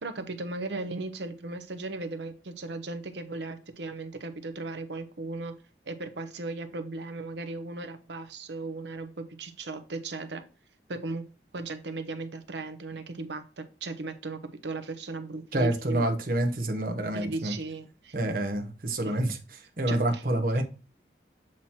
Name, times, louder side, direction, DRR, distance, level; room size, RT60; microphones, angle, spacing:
voice 1, 0.0-5.5 5.8-10.4 10.9-11.3 11.5-16.1 17.1-18.2 19.0-19.2 19.9-20.2, right 3 dB, 75° right, 0.8 m, -37 dB
voice 2, 15.5-17.5 18.1-20.6, right 1 dB, 50° right, 0.9 m, -28 dB
7.4 x 3.0 x 4.2 m
head